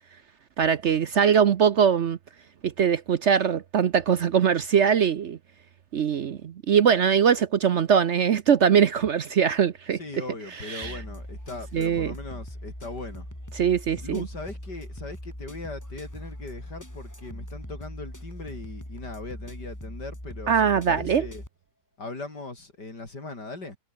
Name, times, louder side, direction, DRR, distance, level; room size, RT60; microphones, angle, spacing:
voice 1, 0.6-2.2 2.6-5.4 5.9-10.0 10.7-10.9 11.7-12.1 13.6-14.2 20.5-21.3, right 7 dB, 55° right, 0.9 m, -22 dB
voice 2, 9.9-13.3 14.0-21.5 22.0-23.8, left 3 dB, 85° left, 6.1 m, -39 dB
sound 1, 10.8-21.5, equal, 10° left, 6.0 m, -40 dB
omnidirectional pair, 1.8 m